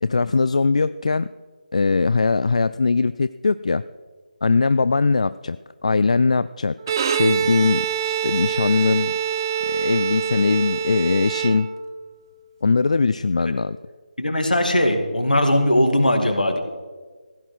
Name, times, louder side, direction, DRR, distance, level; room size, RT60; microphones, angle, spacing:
voice 1, 0.0-1.3 1.7-3.8 4.4-5.6 5.8-6.7 7.1-9.1 9.7-11.7 12.6-13.8, left 4 dB, 50° left, 15 dB, 0.3 m, -20 dB
Bowed string instrument, 6.8-12.0, right 8 dB, 25° right, 0.8 m, -25 dB
voice 2, 14.2-16.6, left 1 dB, 70° left, 6 dB, 2.4 m, -19 dB
16.0 x 10.0 x 6.2 m, 1.4 s
figure-of-eight pair, 155°, 5 cm